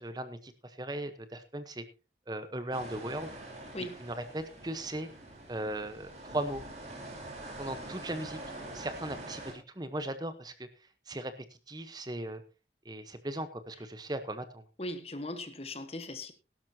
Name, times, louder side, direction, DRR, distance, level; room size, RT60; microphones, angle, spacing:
voice 1, 0.0-1.8 2.3-3.3 4.0-5.1 5.5-6.6 7.6-8.4 8.7-10.7 11.1-11.3 11.7-12.4 12.8-14.6, right 1 dB, 25° right, 1.0 m, -37 dB
sound 1, 2.7-9.5, right 2 dB, 40° right, 4.0 m, -45 dB
voice 2, 14.8-16.3, left 1 dB, 35° left, 1.3 m, -39 dB
17.0 x 12.5 x 2.8 m
head